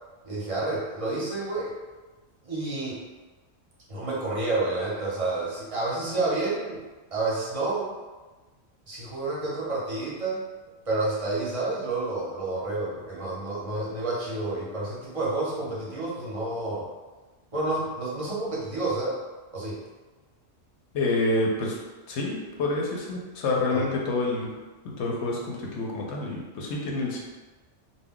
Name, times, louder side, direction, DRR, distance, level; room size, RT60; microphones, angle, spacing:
voice 1, 0.2-1.7 2.4-3.0 3.9-6.8 7.1-7.9 8.9-10.4 10.9-16.9 17.5-19.2 19.5-19.8 23.7-23.8, right 2 dB, 35° right, -7 dB, 0.7 m, -29 dB
voice 2, 20.9-21.8 22.1-24.5 24.8-27.2, left 2 dB, 70° left, -2 dB, 0.8 m, -28 dB
2.2 x 2.2 x 3.6 m, 1.2 s
omnidirectional pair, 1.3 m